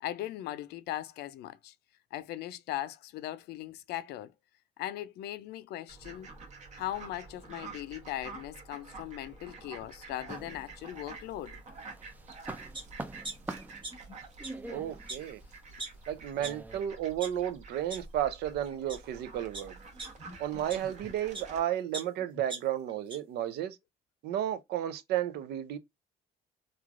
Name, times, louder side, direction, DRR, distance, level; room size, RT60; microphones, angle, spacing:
voice 1, 0.0-1.7 2.1-4.3 4.8-6.3 6.7-11.6, left 13 dB, 75° left, 0.4 m, -39 dB
Fowl, 5.9-21.6, right 3 dB, 45° right, 0.9 m, -49 dB
sound 1, 10.3-11.3 11.7-16.8, right 2 dB, 10° right, 0.3 m, -45 dB
sound 2, 12.7-12.8 13.2-14.1 14.4-14.5 15.1-15.2 15.8-15.9 16.4-16.5 17.0-17.3 17.9-18.0 18.7-19.0 19.5-21.5 21.9-23.2 23.6-23.7, right 3 dB, 30° right, 1.3 m, -41 dB
voice 2, 14.7-15.4 16.1-19.7 20.4-23.8 24.2-25.8, right 11 dB, 75° right, 0.5 m, -33 dB
3.1 x 2.4 x 2.4 m
cardioid pair, 110°, 17 cm